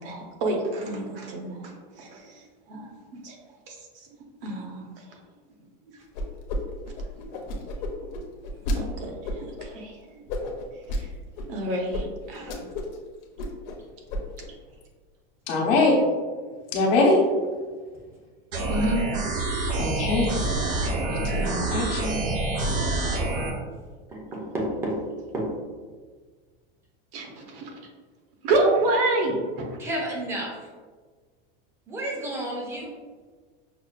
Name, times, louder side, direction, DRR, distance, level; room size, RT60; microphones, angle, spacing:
voice 1, 0.0-2.9 3.2-3.4 3.7-4.1 4.4-5.0 8.7-10.2 10.9-11.1 11.5-12.7 18.7-19.1 27.1-27.7 28.4-29.8, right 2 dB, 70° right, 1 dB, 0.9 m, -28 dB
sound 1, 6.1-6.6 6.8-8.8 9.2-9.7 10.3-11.0 11.4-11.5 11.9-12.0 12.3-13.0 13.2-13.8 14.1-14.5, left 1 dB, 50° left, 0.5 m, -31 dB
voice 2, 15.5-16.0 16.7-17.2 19.8-20.3 21.1-22.2, left 2 dB, 70° left, -2 dB, 0.9 m, -22 dB
sound 2, 18.5-23.5, right 2 dB, 45° right, 0.6 m, -27 dB
voice 3, 24.1-25.0 25.3-25.5 29.8-30.5 31.9-32.9, right 1 dB, 10° right, -2 dB, 0.3 m, -30 dB
5.6 x 2.1 x 2.4 m, 1.5 s
supercardioid pair, 165°, 29 cm